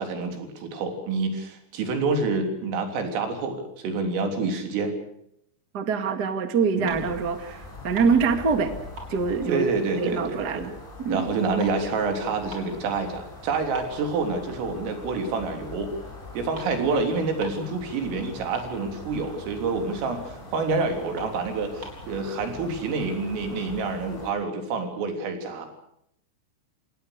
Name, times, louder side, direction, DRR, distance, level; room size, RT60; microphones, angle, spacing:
voice 1, 0.0-4.9 6.7-7.1 9.5-10.6 11.1-15.9 16.3-25.7, right 4 dB, 80° right, 5 dB, 6.0 m, -27 dB
voice 2, 5.7-8.7 9.1-9.6 10.0-10.7 11.0-11.3, right 5 dB, 55° right, 7 dB, 1.1 m, -24 dB
sound 1, 6.9-24.3, left 2 dB, 10° left, 6.3 m, -43 dB
sound 2, 6.9-7.3 7.6-8.7 9.0-10.5 10.8-12.9 13.3-13.4 13.7-14.8 15.2-15.4 16.2-16.3 16.5-16.8 17.1-17.2 17.4-17.8 18.1-18.2 18.3-19.2 19.6-19.7 20.1-20.2 20.7-20.8 21.1-22.1, right 2 dB, 20° right, 5.2 m, -43 dB
27.0 x 20.0 x 6.6 m, 0.75 s
omnidirectional pair, 5.7 m